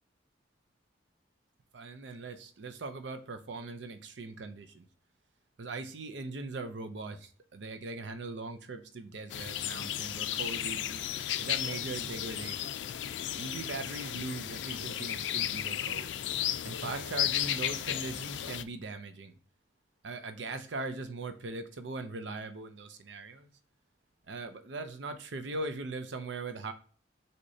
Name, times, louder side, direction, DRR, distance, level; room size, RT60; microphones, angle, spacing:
voice 1, 1.7-4.9 5.6-11.0 11.4-12.8 13.4-16.1 16.6-19.4 20.0-23.5 24.3-26.7, right 3 dB, 75° right, 8 dB, 0.6 m, -40 dB
sound 1, 9.3-18.6, left 11 dB, 85° left, 0.4 m, -34 dB
6.3 x 2.9 x 2.7 m, 0.42 s
head